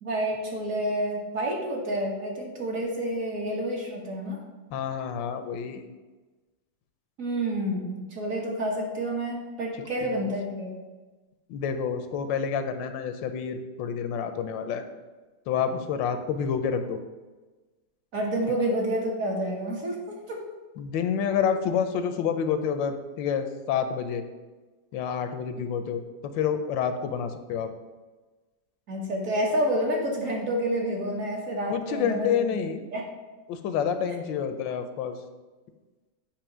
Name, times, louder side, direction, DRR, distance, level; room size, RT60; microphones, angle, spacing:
voice 1, 0.0-4.4 7.2-10.7 18.1-20.0 20.3-20.4 28.9-32.6 32.9-33.0, right 1 dB, 50° right, -1 dB, 1.4 m, -29 dB
voice 2, 4.7-5.8 10.0-10.3 11.5-14.8 15.5-17.0 20.8-24.2 24.9-27.7 31.7-32.8 33.5-35.2, left 7 dB, 80° left, 8 dB, 1.3 m, -28 dB
8.6 x 2.9 x 6.0 m, 1.2 s
omnidirectional pair, 2.0 m